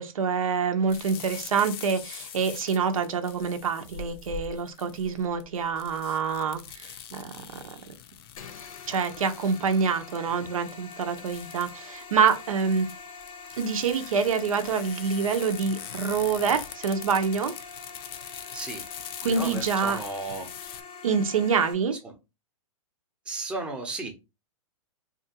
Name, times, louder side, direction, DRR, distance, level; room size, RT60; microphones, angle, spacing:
voice 1, 0.0-7.8 8.9-12.9 13.6-17.5 19.2-20.0 21.0-22.0, right 6 dB, 85° right, 6 dB, 0.7 m, -26 dB
sound 1, 0.9-20.8, left 9 dB, 45° left, 0.5 m, -43 dB
sound 2, 8.4-21.7, left 5 dB, 80° left, 0.7 m, -44 dB
voice 2, 18.5-18.8 19.2-20.5 22.0-22.1 23.3-24.1, right 3 dB, 5° right, 2 dB, 0.6 m, -34 dB
2.8 x 2.4 x 2.8 m, 0.25 s
hypercardioid pair, 140°, 17 cm